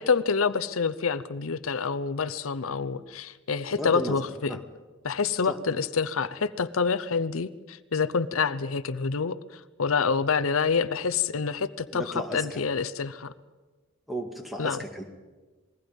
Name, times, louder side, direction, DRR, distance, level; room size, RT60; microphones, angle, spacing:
voice 1, 0.0-4.6 5.0-13.3 14.6-14.8, left 5 dB, 85° left, 14 dB, 0.7 m, -27 dB
voice 2, 3.7-4.2 4.5-4.6 5.4-5.6 11.9-12.6 14.1-15.0, equal, ahead, 3 dB, 2.1 m, -34 dB
27.5 x 21.0 x 5.3 m, 1.3 s
head